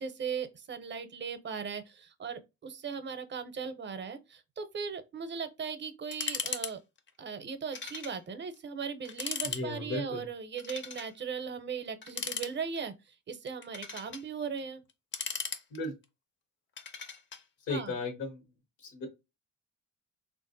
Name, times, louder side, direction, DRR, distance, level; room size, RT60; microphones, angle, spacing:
voice 1, 0.0-6.8 7.2-14.8 17.7-17.9, right 6 dB, 40° right, 0.6 m, -38 dB
sound 1, 6.1-6.7 7.0-7.1 7.7-8.2 8.5-8.6 9.1-9.6 10.6-11.1 12.0-12.9 13.5-14.2 14.9-16.0 16.8-17.4, left 5 dB, 40° left, 0.5 m, -37 dB
voice 2, 9.5-10.2 15.7-15.9 17.7-18.4 18.8-19.1, left 2 dB, 85° left, 1.1 m, -35 dB
3.4 x 2.5 x 2.5 m
cardioid pair, 115°, 29 cm